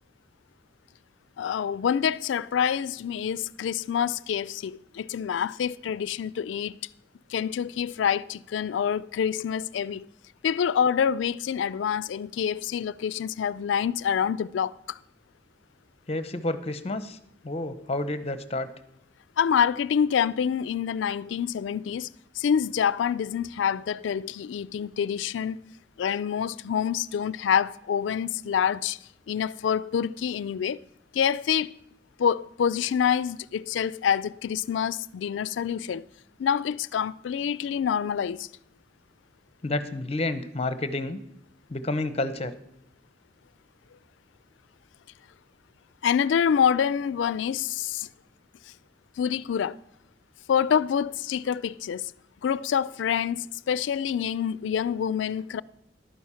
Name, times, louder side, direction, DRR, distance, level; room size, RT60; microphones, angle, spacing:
voice 1, 1.4-6.8 7.3-10.1 10.4-15.0 19.4-22.1 22.4-25.6 26.0-29.0 29.3-30.8 31.1-31.7 32.2-36.0 36.4-38.5 46.0-48.1 49.2-49.8 50.5-52.1 52.4-55.6, left 8 dB, 90° left, 0.3 m, -26 dB
voice 2, 16.1-17.2 17.4-18.7 39.6-41.2 41.7-42.5, left 2 dB, 35° left, 0.8 m, -30 dB
11.5 x 9.5 x 5.6 m
head